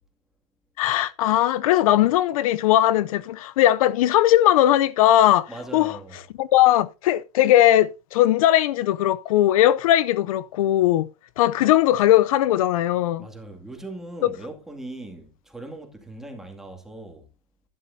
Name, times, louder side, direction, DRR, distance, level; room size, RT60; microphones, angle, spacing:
voice 1, 0.8-6.0 6.4-11.1 11.4-13.3 14.2-14.3, left 13 dB, 70° left, 0.6 m, -19 dB
voice 2, 5.5-6.2 13.2-17.3, right 2 dB, ahead, 2.3 m, -39 dB
12.0 x 11.0 x 2.7 m
supercardioid pair, 150°, 18 cm